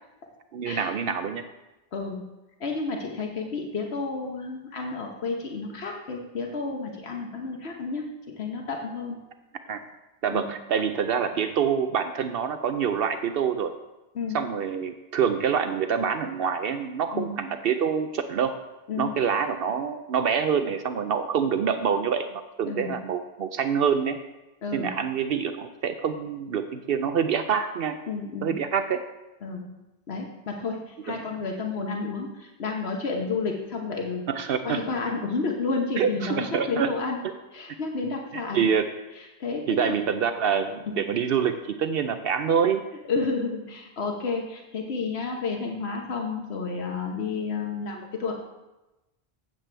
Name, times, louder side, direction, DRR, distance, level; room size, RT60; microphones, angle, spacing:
voice 1, 0.5-1.4 9.7-9.8 10.2-13.7 14.3-18.5 19.0-22.3 22.6-24.2 24.7-28.0 28.4-29.0 31.1-31.2 34.3-34.8 36.0-36.9 37.2-37.3 38.3-38.9 39.7-42.9, right 7 dB, 70° right, 9 dB, 0.8 m, -26 dB
voice 2, 1.9-2.2 2.6-8.0 8.4-9.2 10.3-10.5 14.1-14.4 17.1-17.3 18.9-19.1 22.7-22.9 24.6-24.9 28.1-28.5 29.4-29.7 30.1-34.3 34.6-37.2 37.5-38.7 39.4-40.0 40.9-41.0 43.1-48.3, left 4 dB, 80° left, 1 dB, 1.3 m, -31 dB
14.5 x 7.5 x 3.3 m, 1.0 s
omnidirectional pair, 1.1 m